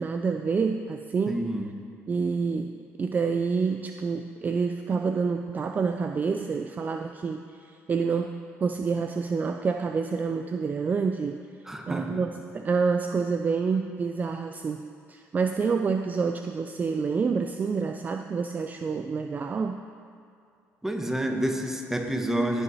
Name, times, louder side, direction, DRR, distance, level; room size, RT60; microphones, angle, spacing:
voice 1, 0.0-1.5 2.1-11.4 11.9-19.9, right 5 dB, 30° right, 6 dB, 0.4 m, -28 dB
voice 2, 1.3-1.7 11.6-12.3 20.8-22.6, right 1 dB, 5° right, 3 dB, 1.1 m, -29 dB
16.5 x 5.7 x 4.1 m, 2.4 s
cardioid pair, 100°, 6 cm